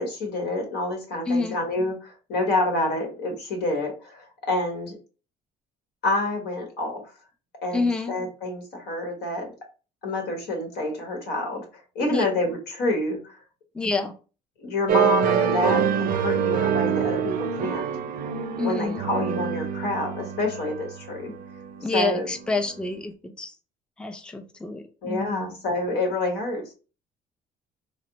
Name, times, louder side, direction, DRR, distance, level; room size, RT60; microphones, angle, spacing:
voice 1, 0.0-5.0 6.0-7.1 7.6-9.5 10.0-13.4 14.6-17.9 18.6-21.3 21.8-22.3 25.0-26.7, left 2 dB, 80° left, 2 dB, 1.2 m, -28 dB
voice 2, 1.3-1.6 7.7-8.1 12.1-12.2 13.7-14.1 18.6-19.0 21.8-23.5 24.0-25.6, left 3 dB, 5° left, 6 dB, 0.4 m, -27 dB
sound 1, 14.9-22.7, right 8 dB, 55° right, 0.4 m, -26 dB
3.3 x 2.0 x 2.8 m, 0.35 s
cardioid pair, 110°, 17 cm